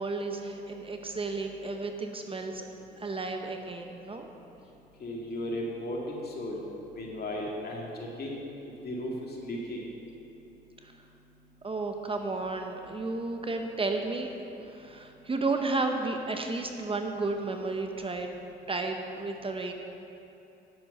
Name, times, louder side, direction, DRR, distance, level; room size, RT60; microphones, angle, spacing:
voice 1, 0.0-2.6 3.0-4.3 10.8-10.9 11.6-14.3 14.6-18.3 18.7-19.7, right 3 dB, 25° right, 4 dB, 0.8 m, -32 dB
voice 2, 5.0-6.6 6.9-8.4 8.8-9.8, left 1 dB, 50° left, -2 dB, 2.1 m, -35 dB
9.4 x 7.7 x 5.4 m, 2.9 s
cardioid pair, 90°, 20 cm